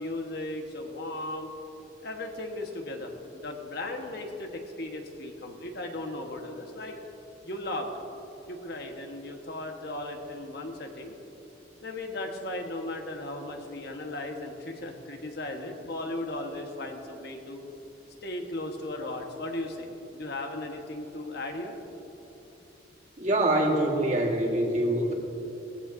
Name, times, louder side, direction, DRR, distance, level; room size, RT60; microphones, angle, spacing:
voice 1, 0.0-1.5 2.0-7.0 7.4-7.9 8.5-11.1 11.8-17.6 18.2-21.8, left 1 dB, 55° left, 3 dB, 1.3 m, -36 dB
voice 2, 23.2-25.1, right 1 dB, 35° right, 0 dB, 1.5 m, -25 dB
18.5 x 15.0 x 2.6 m, 3.0 s
head